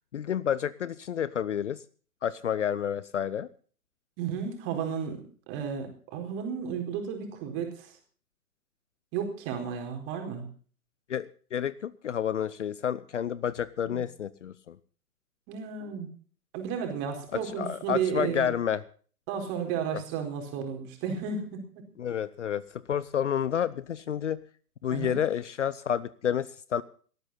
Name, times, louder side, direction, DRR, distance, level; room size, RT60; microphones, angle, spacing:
voice 1, 0.1-1.8 2.2-3.5 11.1-14.8 17.6-18.8 19.9-20.0 22.0-24.4 24.8-26.8, left 9 dB, 50° left, 19 dB, 0.8 m, -30 dB
voice 2, 4.2-7.9 9.1-10.5 13.9-14.0 15.5-16.1 16.5-18.5 19.3-21.8 24.9-25.2, right 7 dB, 25° right, 4 dB, 4.4 m, -33 dB
18.5 x 14.0 x 4.1 m, 0.42 s
figure-of-eight pair, 130°, 47 cm